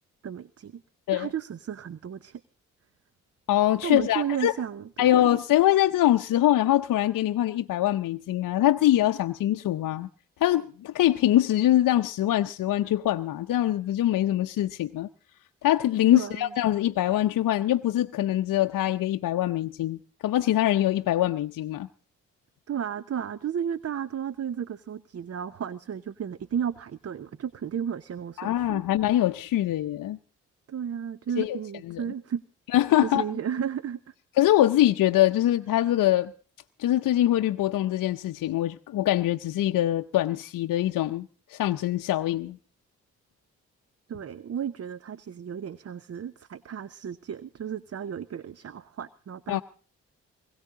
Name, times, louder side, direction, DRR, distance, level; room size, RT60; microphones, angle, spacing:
voice 1, 0.2-0.8 1.1-2.4 3.8-5.3 16.1-16.5 22.7-28.8 30.7-32.4 33.0-34.1 44.1-49.6, right 8 dB, 45° right, 0.7 m, -33 dB
voice 2, 3.5-4.5 5.0-10.1 10.4-15.1 15.6-21.9 28.4-30.2 31.4-31.6 31.9-32.0 32.7-33.2 34.4-36.3 36.8-42.6 49.5-49.6, left 13 dB, 65° left, 0.7 m, -23 dB
21.0 x 16.5 x 3.8 m
hypercardioid pair, 40°, 35 cm